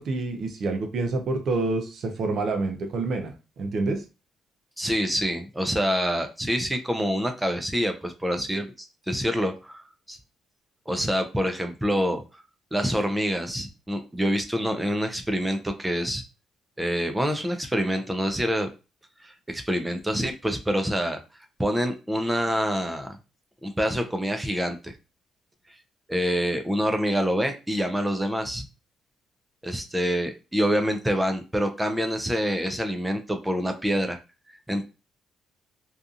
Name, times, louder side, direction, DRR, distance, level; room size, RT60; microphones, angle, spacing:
voice 1, 0.0-4.0, right 3 dB, 55° right, 5 dB, 0.5 m, -28 dB
voice 2, 4.8-8.7 9.1-9.7 10.1-10.2 10.9-12.2 12.7-16.2 16.8-18.7 19.2-21.2 21.6-23.2 23.6-24.9 26.1-28.7 29.6-34.2 34.7-34.8, equal, 10° right, 6 dB, 0.4 m, -26 dB
2.7 x 2.4 x 2.4 m, 0.30 s
cardioid pair, 115°, 0 cm